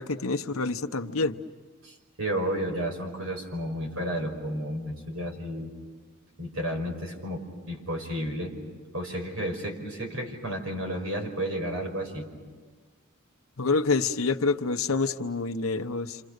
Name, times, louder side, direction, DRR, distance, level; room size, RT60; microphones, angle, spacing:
voice 1, 0.0-1.4 13.6-16.2, left 3 dB, 85° left, 6 dB, 1.1 m, -27 dB
voice 2, 1.8-5.7 6.4-8.6 8.9-12.3, equal, 80° right, 2 dB, 5.6 m, -32 dB
29.0 x 28.0 x 6.7 m, 1.4 s
head